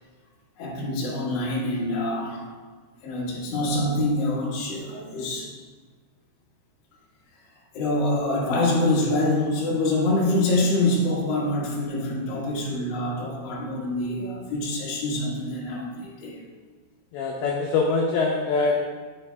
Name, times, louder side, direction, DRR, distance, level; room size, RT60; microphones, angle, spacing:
voice 1, 0.6-2.4 3.0-5.5 7.7-16.4, left 1 dB, 60° left, -5 dB, 1.6 m, -25 dB
voice 2, 17.1-18.8, left 3 dB, 85° left, 0 dB, 2.2 m, -23 dB
9.9 x 4.3 x 3.3 m, 1.5 s
omnidirectional pair, 5.0 m